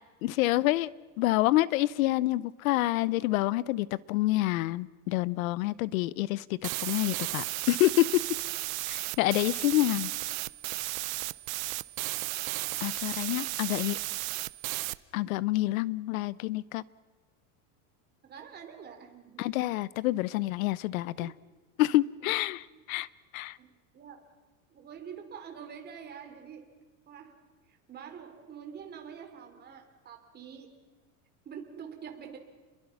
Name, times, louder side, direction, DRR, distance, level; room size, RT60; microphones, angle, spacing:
voice 1, 0.2-0.9 1.2-8.2 8.9-10.1 12.8-14.0 15.1-16.8 19.4-21.3 21.8-23.1 23.3-23.6, left 17 dB, 90° left, 21 dB, 0.8 m, -27 dB
sound 1, 6.6-15.0, right 21 dB, 80° right, 0.8 m, -34 dB
voice 2, 18.2-19.6 21.2-21.3 22.2-22.3 22.7-22.8 23.6-24.2 24.7-26.7 27.1-30.9 31.4-32.4, right 7 dB, 25° right, 4 dB, 3.2 m, -46 dB
29.5 x 22.0 x 5.9 m, 1.3 s
supercardioid pair, 150°, 40 cm